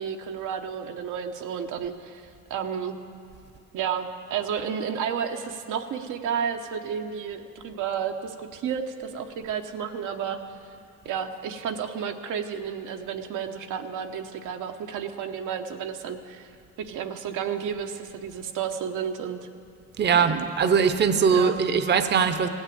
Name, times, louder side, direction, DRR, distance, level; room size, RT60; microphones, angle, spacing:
voice 1, 0.0-3.0 3.7-10.4 11.0-16.5 16.8-19.5 20.1-20.5 21.3-21.6, right 7 dB, 85° right, 4 dB, 0.9 m, -32 dB
voice 2, 20.0-22.5, right 6 dB, 35° right, 9 dB, 0.7 m, -21 dB
17.0 x 6.3 x 8.5 m, 2.4 s
cardioid pair, 90°, 30 cm